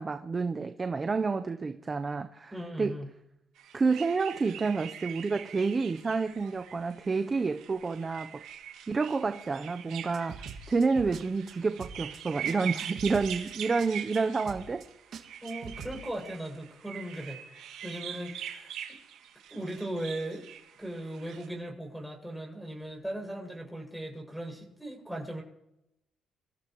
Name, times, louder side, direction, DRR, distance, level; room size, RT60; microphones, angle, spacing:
voice 1, 0.0-3.0 3.7-8.4 8.9-14.9, right 4 dB, 30° right, 7 dB, 0.7 m, -29 dB
voice 2, 2.5-3.1 15.4-19.0 19.5-20.5 20.8-25.4, right 1 dB, ahead, -2 dB, 6.8 m, -38 dB
sound 1, 3.6-21.5, right 9 dB, 85° right, 2.4 m, -43 dB
sound 2, 10.1-11.2 11.5-11.6 11.8-12.2 12.4-12.5 12.8-13.5 13.8-13.9 14.1-14.2 14.4-14.8 15.1-16.0, right 6 dB, 70° right, 2.0 m, -43 dB
26.0 x 15.0 x 3.1 m, 0.85 s
cardioid pair, 90°, 0 cm